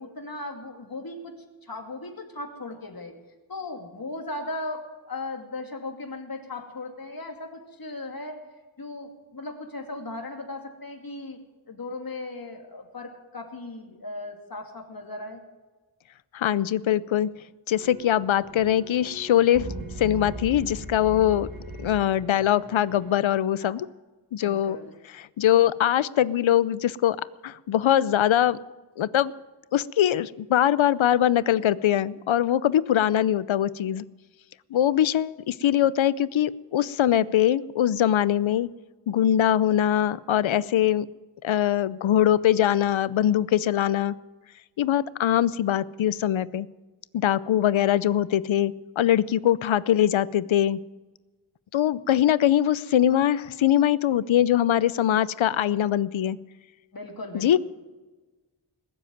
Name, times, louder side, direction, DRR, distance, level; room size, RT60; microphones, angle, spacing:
voice 1, 0.0-3.2 3.5-8.4 8.8-11.4 11.7-15.4 23.6-23.7 24.4-24.9 53.5-53.6 56.9-57.6, left 2 dB, 50° left, 3 dB, 2.6 m, -37 dB
voice 2, 16.3-17.3 17.7-19.7 20.0-21.5 21.8-23.9 24.3-24.8 25.2-28.6 29.0-29.3 29.7-34.1 34.7-38.7 39.1-41.1 41.4-44.2 44.8-46.7 47.1-50.8 51.7-56.4 57.3-57.6, left 11 dB, 85° left, 19 dB, 0.6 m, -22 dB
sound 1, 17.7-23.1, right 1 dB, 50° right, 4.4 m, -39 dB
20.0 x 7.8 x 9.2 m, 1.2 s
wide cardioid pair, 80°, 46 cm